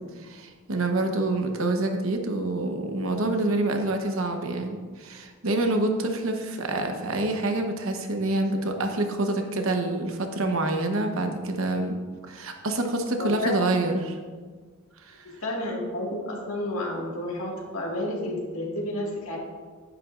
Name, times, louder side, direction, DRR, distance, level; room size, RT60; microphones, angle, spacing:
voice 1, 0.2-11.9 12.3-14.2 15.0-15.3 18.2-18.4, right 2 dB, 70° right, 4 dB, 1.0 m, -27 dB
voice 2, 13.2-13.6 15.2-19.4, left 1 dB, 80° left, -2 dB, 1.9 m, -31 dB
10.0 x 9.1 x 2.5 m, 1.5 s
head